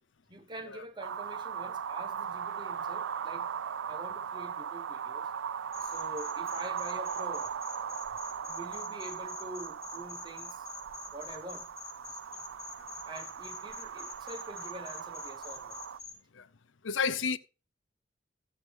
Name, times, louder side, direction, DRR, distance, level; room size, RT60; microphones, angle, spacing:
voice 1, 0.3-3.5 3.9-5.3 5.8-7.5 8.4-10.7 11.1-11.7 13.0-15.8, right 1 dB, 25° right, 1.1 m, -45 dB
sound 1, 1.0-16.0, right 7 dB, 75° right, 0.4 m, -38 dB
sound 2, 5.7-16.1, left 5 dB, 15° left, 6.6 m, -47 dB
voice 2, 16.8-17.4, left 5 dB, 75° left, 0.6 m, -31 dB
14.5 x 8.0 x 3.5 m
head